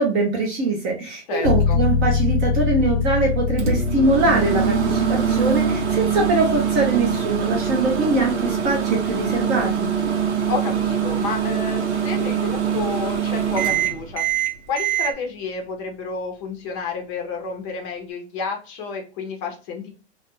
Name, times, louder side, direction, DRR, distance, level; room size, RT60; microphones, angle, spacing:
voice 1, 0.0-9.9, right 2 dB, 20° right, 0 dB, 0.4 m, -22 dB
voice 2, 1.3-1.8 10.5-14.2 14.7-19.9, left 4 dB, 30° left, 2 dB, 0.6 m, -30 dB
sound 1, 1.4-12.0, left 6 dB, 85° left, 0.8 m, -26 dB
Microwave oven, 3.6-15.1, right 8 dB, 80° right, 0.7 m, -23 dB
2.3 x 2.1 x 2.9 m, 0.34 s
hypercardioid pair, 145°, 34 cm